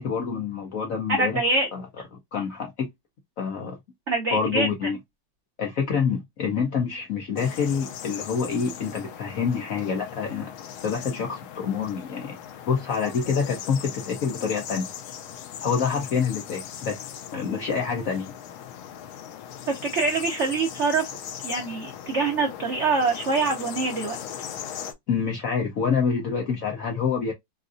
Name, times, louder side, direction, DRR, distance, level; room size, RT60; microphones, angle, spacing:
voice 1, 0.0-1.9 2.1-2.9 3.4-3.8 4.3-5.0 5.6-10.5 10.8-12.4 12.6-14.9 15.6-17.0 17.3-18.3 25.1-27.3, left 6 dB, 70° left, 0.8 m, -27 dB
voice 2, 1.1-1.7 4.1-4.7 19.7-21.0 21.4-24.2, right 3 dB, 75° right, 0.6 m, -24 dB
sound 1, 7.4-24.9, left 9 dB, 90° left, 1.5 m, -39 dB
3.9 x 2.4 x 2.5 m
omnidirectional pair, 2.2 m